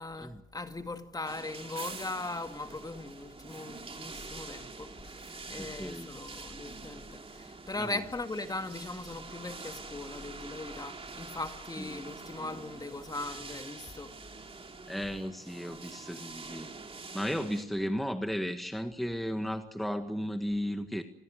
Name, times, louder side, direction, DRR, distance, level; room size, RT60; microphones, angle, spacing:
voice 1, 0.0-14.1, left 2 dB, 20° left, 2.2 m, -39 dB
sound 1, 1.3-17.6, right 4 dB, 30° right, 2.9 m, -46 dB
voice 2, 5.6-6.1 7.8-8.0 11.8-12.1 14.9-16.7 17.1-21.0, equal, ahead, 1.7 m, -35 dB
29.0 x 21.5 x 6.5 m
cardioid pair, 90°, 20 cm